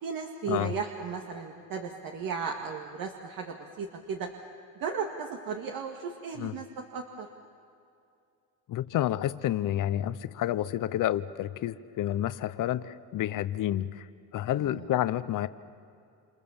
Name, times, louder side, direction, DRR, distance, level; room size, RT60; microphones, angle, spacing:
voice 1, 0.0-4.3 4.8-7.3 14.6-14.9, right 5 dB, 70° right, 3 dB, 2.1 m, -35 dB
voice 2, 8.7-14.1 14.3-15.5, left 12 dB, 60° left, 14 dB, 0.9 m, -29 dB
28.5 x 28.5 x 7.2 m, 2.5 s
cardioid pair, 150°, 36 cm